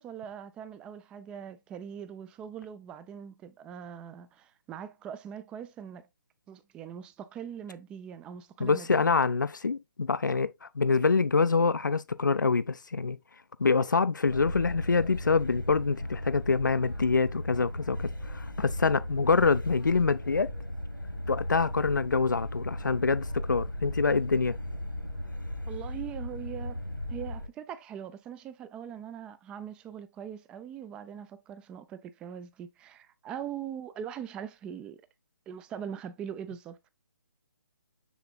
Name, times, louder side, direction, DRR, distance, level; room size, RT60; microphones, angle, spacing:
voice 1, 0.0-6.1 6.5-9.1 25.7-26.8 27.1-35.0 35.5-36.9, right 8 dB, 10° right, 0.4 m, -41 dB
voice 2, 8.6-13.2 13.6-20.5 21.3-24.6, left 4 dB, 70° left, 0.5 m, -26 dB
sound 1, 14.2-27.5, left 1 dB, 90° left, 2.0 m, -36 dB
7.0 x 6.7 x 2.3 m
figure-of-eight pair, 140°, 11 cm